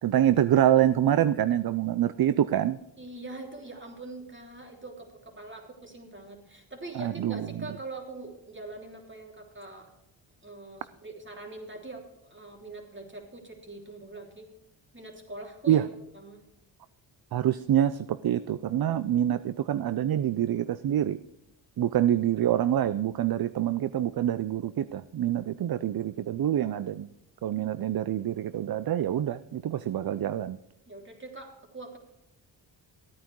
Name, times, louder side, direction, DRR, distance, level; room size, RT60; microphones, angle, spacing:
voice 1, 0.0-2.8 6.9-7.5 15.7-15.9 17.3-21.2 21.8-27.1 27.4-30.6, right 11 dB, 50° right, 15 dB, 0.6 m, -26 dB
voice 2, 3.0-9.9 10.4-14.5 14.9-15.9 16.1-16.4 30.9-32.0, right 2 dB, 25° right, 1 dB, 3.2 m, -43 dB
14.0 x 9.1 x 4.6 m, 0.86 s
cardioid pair, 65°, 47 cm